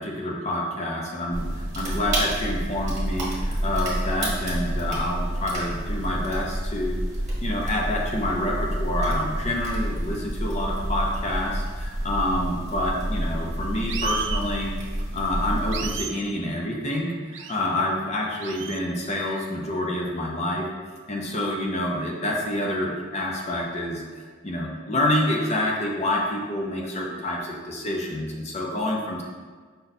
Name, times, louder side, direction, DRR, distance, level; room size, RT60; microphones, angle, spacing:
voice 1, 0.0-7.0 7.4-20.6 21.1-29.2, left 1 dB, 35° left, -1 dB, 0.6 m, -27 dB
sound 1, 1.3-16.0, right 1 dB, 35° right, 1.1 m, -29 dB
sound 2, 13.9-14.4 15.7-16.2 17.3-17.6 18.4-18.8, right 8 dB, 60° right, 0.3 m, -33 dB
5.3 x 2.3 x 4.0 m, 1.5 s
head